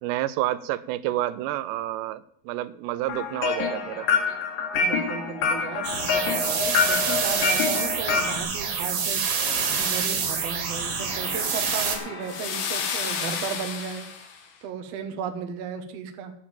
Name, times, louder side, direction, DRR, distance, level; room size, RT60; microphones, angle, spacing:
voice 1, 0.0-4.1, right 14 dB, 85° right, 15 dB, 2.8 m, -29 dB
sound 1, 3.1-8.4, left 5 dB, 65° left, 3.0 m, -26 dB
voice 2, 4.7-9.3 9.8-14.1 14.6-16.3, right 6 dB, 70° right, 6 dB, 1.5 m, -35 dB
sound 2, 5.8-12.0, right 6 dB, 50° right, 2.9 m, -27 dB
sound 3, 9.8-14.4, left 6 dB, 80° left, 3.8 m, -33 dB
9.8 x 7.3 x 8.7 m, 0.68 s
omnidirectional pair, 4.9 m